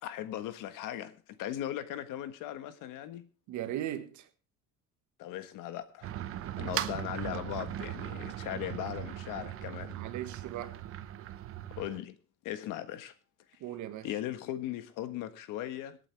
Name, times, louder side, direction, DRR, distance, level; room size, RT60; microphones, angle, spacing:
voice 1, 0.0-3.3 5.2-6.1 6.6-10.0 11.8-12.2 12.4-13.1 14.0-16.0, left 12 dB, 80° left, 1.6 m, -38 dB
voice 2, 3.5-4.2 9.9-10.8 13.6-14.1, right 12 dB, 65° right, 1.7 m, -38 dB
sound 1, 6.0-12.0, right 12 dB, 45° right, 0.9 m, -39 dB
26.0 x 8.8 x 3.4 m
cardioid pair, 170°, 31 cm